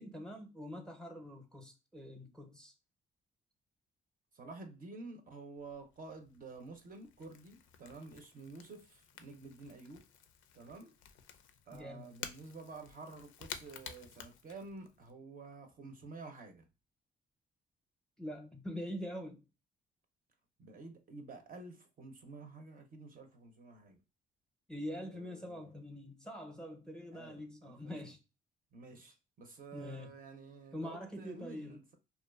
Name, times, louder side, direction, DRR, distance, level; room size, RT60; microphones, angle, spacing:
voice 1, 0.0-2.7 11.7-12.1 18.2-19.4 24.7-28.2 28.9-29.0 29.7-30.1 30.7-31.8, equal, 5° left, 0.6 m, -44 dB
voice 2, 4.3-10.1 10.5-11.0 11.7-16.7 20.6-24.0 25.1-25.7 27.1-28.1 28.7-32.0, right 3 dB, 45° right, 0.6 m, -50 dB
Crackle / Crack, 5.6-15.1, left 8 dB, 85° left, 0.4 m, -52 dB
2.6 x 2.3 x 2.2 m
cardioid pair, 90°, 20 cm